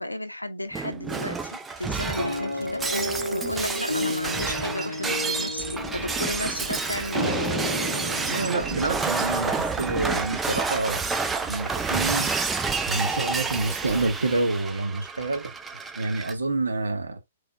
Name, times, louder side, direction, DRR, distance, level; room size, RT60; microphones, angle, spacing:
voice 1, 0.0-7.6 12.2-12.3, left 1 dB, 90° left, 0.5 m, -34 dB
Shatter, 0.7-16.3, right 4 dB, 10° right, 0.4 m, -29 dB
sound 1, 2.2-10.3 10.9-11.0 11.2-11.5, left 1 dB, 90° right, 1.4 m, -32 dB
voice 2, 8.3-11.0 11.5-12.3 12.8-15.5 16.0-17.2, right 2 dB, 75° right, 0.7 m, -27 dB
3.5 x 3.3 x 2.5 m
figure-of-eight pair, 115°, 0 cm